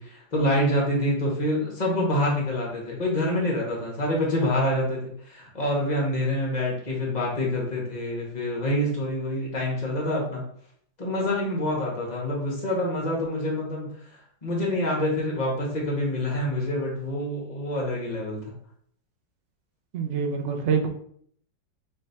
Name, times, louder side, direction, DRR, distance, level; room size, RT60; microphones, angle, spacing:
voice 1, 0.0-10.4 11.0-13.9 14.4-18.4, left 1 dB, 25° left, -3 dB, 1.2 m, -26 dB
voice 2, 19.9-20.9, right 6 dB, 65° right, 3 dB, 0.7 m, -25 dB
3.3 x 3.3 x 4.1 m, 0.62 s
omnidirectional pair, 1.9 m